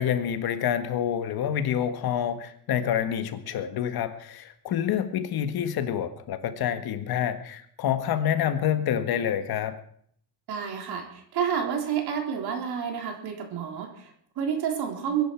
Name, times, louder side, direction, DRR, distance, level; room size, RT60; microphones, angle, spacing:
voice 1, 0.0-9.8, left 9 dB, 60° left, 10 dB, 1.7 m, -27 dB
voice 2, 10.5-15.2, right 8 dB, 65° right, 3 dB, 3.8 m, -29 dB
22.0 x 11.0 x 4.7 m, 0.63 s
cardioid pair, 140°, 42 cm